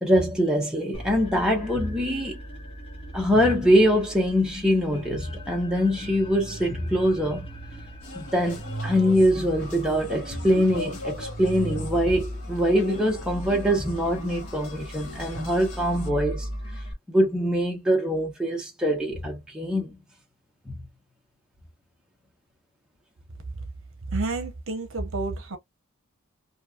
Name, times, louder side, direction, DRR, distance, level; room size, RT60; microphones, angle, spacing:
voice 1, 0.0-2.4 3.1-7.5 8.1-16.5 17.1-19.9 20.7-20.8, equal, 5° right, 1.2 m, -23 dB
sound 1, 0.9-16.9, equal, 25° left, 0.8 m, -38 dB
funfair France ambiance and barker, 8.0-16.1, left 1 dB, 85° left, 1.7 m, -41 dB
voice 2, 24.1-25.6, right 3 dB, 60° right, 0.9 m, -29 dB
3.2 x 2.7 x 2.5 m
head